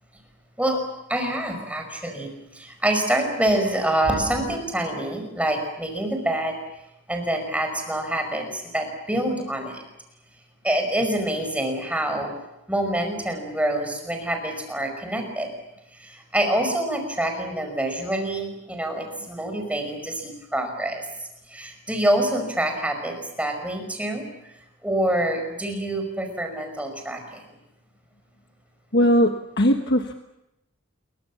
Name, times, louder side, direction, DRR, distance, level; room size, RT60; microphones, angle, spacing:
voice 1, 1.1-6.5 7.1-9.8 10.6-12.3 12.7-15.5 15.9-21.1 21.5-24.5 24.8-27.4, right 1 dB, 5° right, 4 dB, 5.3 m, -26 dB
voice 2, 28.9-30.1, equal, 50° left, 5 dB, 1.4 m, -19 dB
28.5 x 23.5 x 7.3 m, 0.88 s
head